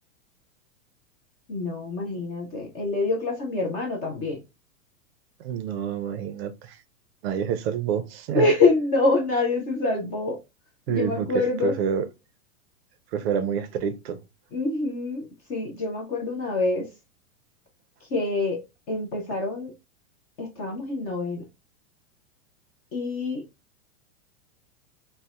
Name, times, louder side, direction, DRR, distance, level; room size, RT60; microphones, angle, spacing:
voice 1, 1.5-4.4 8.3-10.4 10.9-11.7 14.5-16.9 18.1-18.6 18.9-19.7 20.4-21.4 22.9-23.4, left 3 dB, 20° left, 0.3 m, -25 dB
voice 2, 5.4-6.8 7.2-8.5 10.9-11.3 11.6-12.1 13.1-14.2, right 8 dB, 45° right, 0.5 m, -27 dB
3.8 x 2.1 x 2.3 m
hypercardioid pair, 125°, 43 cm